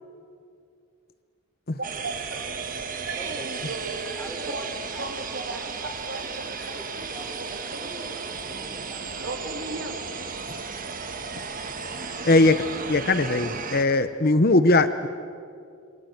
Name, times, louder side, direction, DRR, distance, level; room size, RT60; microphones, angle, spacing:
sound 1, 1.8-13.8, right 5 dB, 40° right, 1.6 m, -34 dB
voice 1, 2.0-2.4 3.1-4.0 4.5-4.6 5.0-6.5 7.0-7.1 7.4-7.9 9.2-9.9, right 2 dB, 55° right, 4 dB, 3.0 m, -36 dB
voice 2, 3.1-3.6 4.2-5.6 6.0-9.9, equal, 5° left, 0 dB, 5.1 m, -43 dB
voice 3, 12.2-12.6 12.9-15.1, left 2 dB, 45° left, 11 dB, 0.9 m, -19 dB
28.5 x 25.5 x 8.0 m, 2.3 s
head